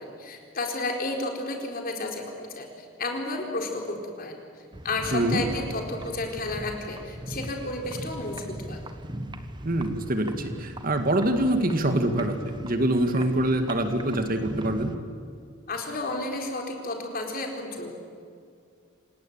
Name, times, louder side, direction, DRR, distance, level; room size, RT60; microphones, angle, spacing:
voice 1, 0.0-4.4 4.8-8.8 15.7-17.9, left 2 dB, 45° left, 2 dB, 4.3 m, -32 dB
sound 1, 4.7-15.0, right 1 dB, 20° right, 1.4 m, -39 dB
voice 2, 5.1-5.4 9.6-12.4 12.6-14.9, right 1 dB, 45° right, 7 dB, 2.0 m, -25 dB
27.5 x 18.5 x 8.9 m, 2.3 s
head